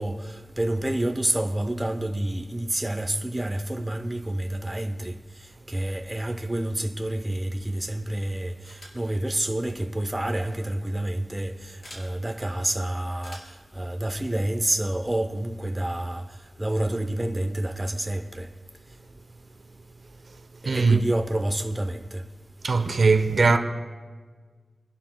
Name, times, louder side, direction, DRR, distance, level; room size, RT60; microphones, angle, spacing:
voice 1, 0.0-18.5 20.6-22.2, right 1 dB, 10° right, 0.7 m, -29 dB
sound 1, 8.6-9.1 10.4-10.6 11.8-12.1 13.2-13.6, left 1 dB, 45° left, 3.7 m, -45 dB
voice 2, 20.7-21.0 22.6-23.6, right 4 dB, 55° right, 0.8 m, -20 dB
28.0 x 11.5 x 2.3 m
wide cardioid pair, 110°, 0 cm